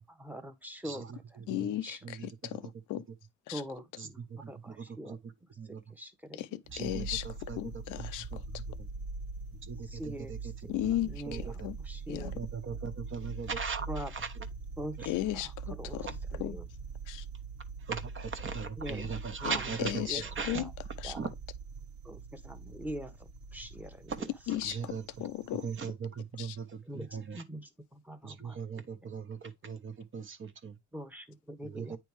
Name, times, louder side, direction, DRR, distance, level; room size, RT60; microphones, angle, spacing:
voice 1, 0.0-1.1 1.8-2.0 3.5-4.2 4.5-5.2 6.0-6.6 9.9-10.4 10.6-10.7 11.1-11.5 11.9-12.4 13.9-14.1 14.8-15.5 15.8-16.1 16.3-16.7 18.8-19.1 19.4-19.6 20.0-20.7 21.0-21.2 22.0-23.1 23.5-24.1 26.9-27.1 27.3-28.8 30.9-32.0, equal, 5° right, 1.0 m, -43 dB
voice 2, 0.8-1.7 2.0-2.3 4.0-5.2 5.6-5.8 6.7-7.6 8.0-8.6 9.7-10.4 10.8-10.9 11.3-11.7 12.3-14.3 15.0-15.1 17.9-20.6 21.1-21.3 24.1-24.3 24.6-25.0 25.6-27.4 28.2-30.7 31.6-32.0, right 6 dB, 40° right, 1.1 m, -39 dB
voice 3, 1.5-3.0 3.5-3.6 6.3-7.3 7.5-8.3 10.7-11.8 12.1-12.4 15.0-16.6 17.1-17.2 19.4-20.7 21.0-21.2 24.5-25.7 26.4-26.6, left 14 dB, 85° left, 0.6 m, -36 dB
sound 1, 6.6-25.9, right 4 dB, 60° right, 1.4 m, -43 dB
9.0 x 3.4 x 3.2 m
cardioid pair, 90°, 30 cm